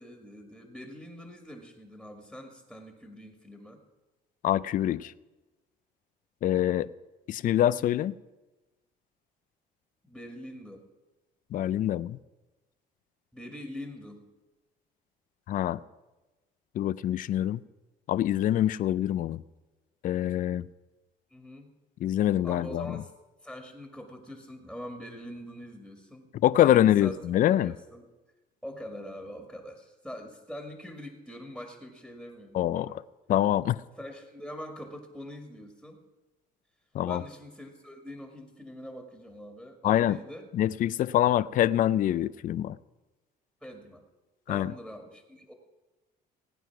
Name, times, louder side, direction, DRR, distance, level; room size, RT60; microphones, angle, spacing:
voice 1, 0.0-3.8 10.0-10.8 13.3-14.2 21.3-21.7 22.4-23.1 23.4-26.3 26.6-27.2 27.5-28.1 28.6-33.0 34.0-36.0 37.0-40.5 43.6-44.0 44.5-45.5, equal, ahead, 2.0 m, -44 dB
voice 2, 4.4-5.1 6.4-6.9 7.3-8.1 11.5-12.2 15.5-15.8 16.8-17.6 18.1-19.4 20.0-20.7 22.0-23.0 26.4-27.7 32.5-33.0 33.3-33.8 36.9-37.2 39.8-40.2 40.5-42.8 44.5-44.7, left 12 dB, 55° left, 0.5 m, -25 dB
17.5 x 9.4 x 6.0 m
cardioid pair, 110°, 17 cm